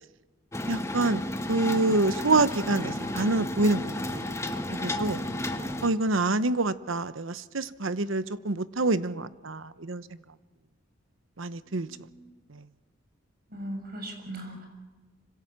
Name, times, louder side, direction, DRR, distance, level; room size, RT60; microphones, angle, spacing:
sound 1, 0.5-5.9, left 1 dB, 15° left, 1.4 m, -32 dB
voice 1, 0.7-1.2 1.5-3.9 4.7-5.2 5.8-10.0 11.4-11.9 12.5-12.6, right 2 dB, 75° right, 1.0 m, -26 dB
voice 2, 11.6-12.3 13.5-14.7, right 1 dB, 45° right, 6.4 m, -39 dB
26.0 x 25.5 x 7.4 m
head